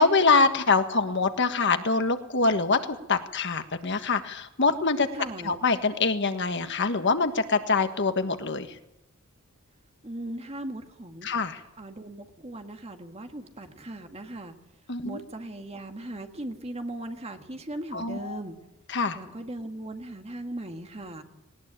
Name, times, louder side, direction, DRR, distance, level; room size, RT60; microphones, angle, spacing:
voice 1, 0.0-5.1 5.4-8.8 11.2-11.6 14.9-15.2 17.9-18.4 18.9-19.2, left 4 dB, 55° left, 8 dB, 1.5 m, -24 dB
voice 2, 5.1-5.6 10.0-11.3 11.8-14.5 15.0-18.6 19.1-21.2, right 1 dB, 30° right, 6 dB, 1.7 m, -38 dB
19.5 x 19.0 x 8.9 m, 0.89 s
head